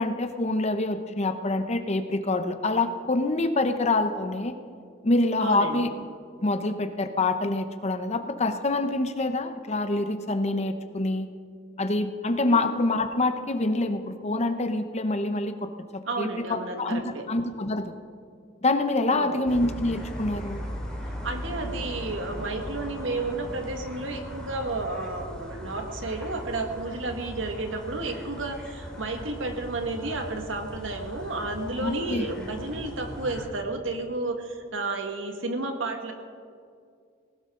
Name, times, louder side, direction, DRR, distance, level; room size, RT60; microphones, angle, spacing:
voice 1, 0.0-4.6 5.0-5.9 6.4-11.3 11.8-15.7 16.2-17.9 18.6-20.6 31.8-32.2, left 2 dB, 35° left, 8 dB, 0.9 m, -26 dB
voice 2, 5.4-5.8 12.5-12.6 16.1-17.3 19.1-19.4 21.0-36.1, right 2 dB, 75° right, 4 dB, 1.9 m, -32 dB
sound 1, 19.5-33.5, equal, 5° left, 2.8 m, -38 dB
19.5 x 18.5 x 3.9 m, 2.2 s
head